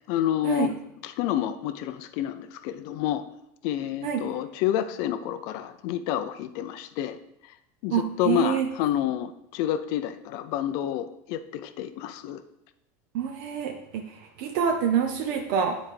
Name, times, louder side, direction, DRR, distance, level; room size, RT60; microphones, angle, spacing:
voice 1, 0.1-0.7 1.0-3.2 3.6-7.2 7.8-12.4, left 11 dB, 45° left, 11 dB, 0.4 m, -29 dB
voice 2, 7.9-8.7 13.1-15.8, right 7 dB, 50° right, 4 dB, 0.5 m, -27 dB
9.5 x 4.4 x 3.2 m, 0.80 s
cardioid pair, 175°, 8 cm